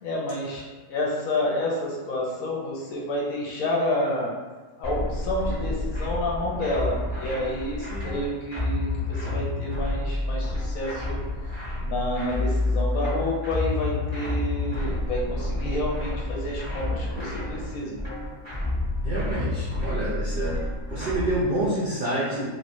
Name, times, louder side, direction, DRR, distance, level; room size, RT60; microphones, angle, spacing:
voice 1, 0.0-4.3 4.8-18.0, left 1 dB, 65° left, -3 dB, 0.9 m, -29 dB
sound 1, 4.8-21.4, left 2 dB, 10° right, 1.4 m, -29 dB
voice 2, 19.0-20.7 20.9-22.4, right 1 dB, 60° right, -10 dB, 0.5 m, -28 dB
3.1 x 2.9 x 2.6 m, 1.3 s
omnidirectional pair, 1.7 m